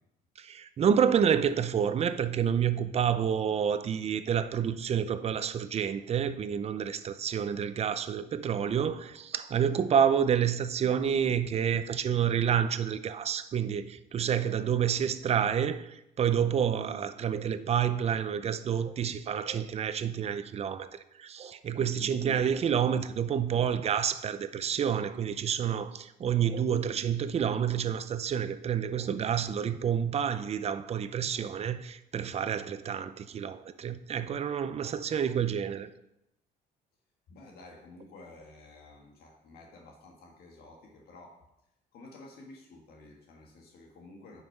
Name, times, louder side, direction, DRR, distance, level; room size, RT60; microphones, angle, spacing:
voice 1, 0.4-35.9, right 8 dB, 40° right, 0.6 m, -29 dB
voice 2, 34.7-35.0 37.3-41.4 41.9-44.4, left 2 dB, 70° left, 1.6 m, -52 dB
9.6 x 5.7 x 4.6 m
cardioid pair, 110°, 17 cm